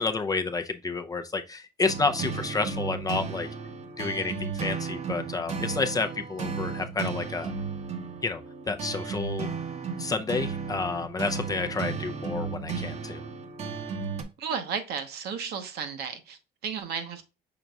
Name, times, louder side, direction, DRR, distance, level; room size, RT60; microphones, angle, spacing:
voice 1, 0.0-3.5 4.0-7.5 8.2-8.4 8.7-9.5 10.0-13.2, left 4 dB, 20° left, 0.4 m, -30 dB
sound 1, 1.8-14.2, right 5 dB, 40° right, 0.8 m, -34 dB
voice 2, 14.4-17.2, right 6 dB, 70° right, 0.9 m, -34 dB
5.9 x 3.8 x 2.2 m
cardioid pair, 110°, 17 cm